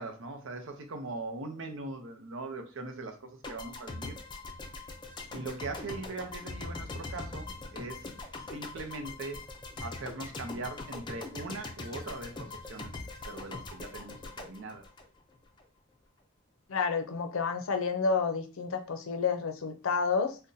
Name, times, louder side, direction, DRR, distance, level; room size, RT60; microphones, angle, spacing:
voice 1, 0.0-4.2 5.3-8.1 8.5-9.4 9.8-12.9 13.3-14.8, right 2 dB, 65° right, 5 dB, 0.6 m, -40 dB
sound 1, 3.4-15.6, left 3 dB, 20° left, 0.4 m, -42 dB
voice 2, 16.7-20.4, left 5 dB, 75° left, 6 dB, 0.5 m, -30 dB
2.6 x 2.1 x 3.8 m, 0.34 s
head